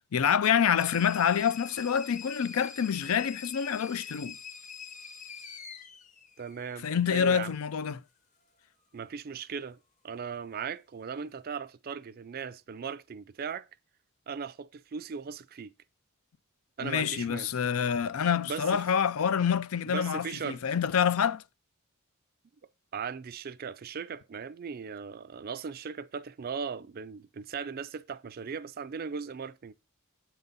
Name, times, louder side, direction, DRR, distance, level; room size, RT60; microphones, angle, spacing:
voice 1, 0.1-4.4 6.8-8.0 16.8-21.4, left 7 dB, 75° left, 0.4 m, -27 dB
sound 1, 0.8-7.2, left 6 dB, 35° left, 0.9 m, -45 dB
voice 2, 6.4-7.5 8.9-9.8 10.0-13.7 14.3-15.7 16.8-17.5 18.4-18.8 19.9-20.6 22.9-29.7, right 6 dB, 45° right, 0.4 m, -38 dB
7.9 x 4.0 x 5.3 m
head